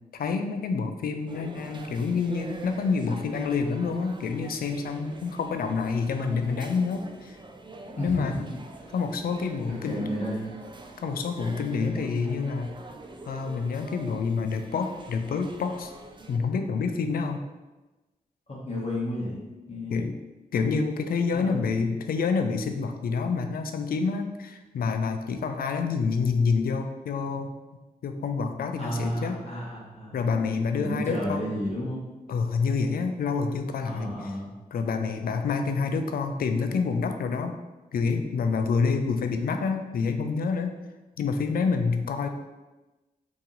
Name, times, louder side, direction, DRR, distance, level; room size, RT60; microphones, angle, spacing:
voice 1, 0.1-7.4 8.0-8.3 8.9-10.1 11.0-12.7 13.3-15.9 16.3-17.4 19.9-20.1 20.5-27.5 28.0-29.4 30.1-31.4 32.3-34.3 34.7-37.6 37.9-40.8 41.2-42.3, left 5 dB, 75° left, 6 dB, 0.4 m, -27 dB
sound 1, 1.3-16.4, right 2 dB, 30° right, 0.4 m, -45 dB
voice 2, 8.0-8.5 8.8-8.9 9.7-10.5 18.5-19.4 19.7-20.0 21.3-21.7 28.8-30.1 30.7-32.0 33.8-34.5, equal, 45° left, -6 dB, 1.1 m, -32 dB
2.9 x 2.7 x 3.8 m, 1.1 s
cardioid pair, 55°, 15 cm